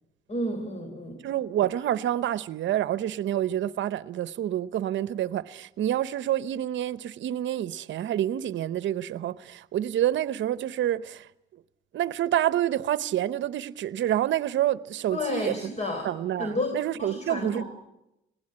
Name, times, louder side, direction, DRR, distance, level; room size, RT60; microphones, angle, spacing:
voice 1, 0.3-1.2 15.1-16.1 16.4-16.7 17.0-17.6, left 1 dB, 35° left, 3.9 m, -31 dB
voice 2, 1.2-11.3 11.9-15.7 16.0-17.6, right 12 dB, 70° right, 0.8 m, -28 dB
20.5 x 17.0 x 8.8 m
cardioid pair, 90°, 20 cm